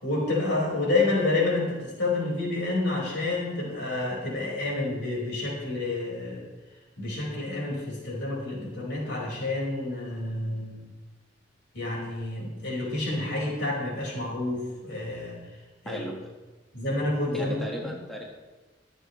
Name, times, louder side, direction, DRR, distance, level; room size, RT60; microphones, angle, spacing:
voice 1, 0.0-6.4 7.0-10.9 11.7-15.4 15.8-16.0 16.7-17.6, left 2 dB, 70° left, -3 dB, 4.7 m, -29 dB
voice 2, 17.3-18.2, equal, ahead, -2 dB, 1.5 m, -35 dB
23.5 x 8.1 x 3.1 m, 1.2 s
head